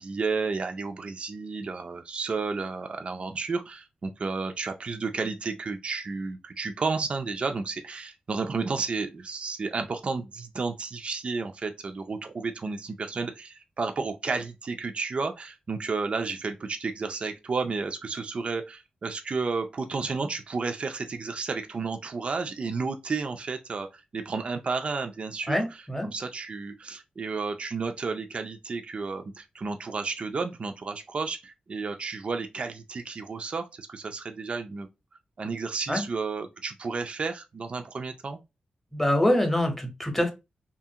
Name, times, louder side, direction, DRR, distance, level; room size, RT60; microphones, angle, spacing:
voice 1, 0.0-34.9 35.4-38.4, right 4 dB, 45° right, 0.3 m, -32 dB
voice 2, 25.5-26.1 35.9-36.0 38.9-40.3, left 1 dB, 10° left, 0.8 m, -25 dB
2.7 x 2.4 x 2.7 m
wide cardioid pair, 100°, 3 cm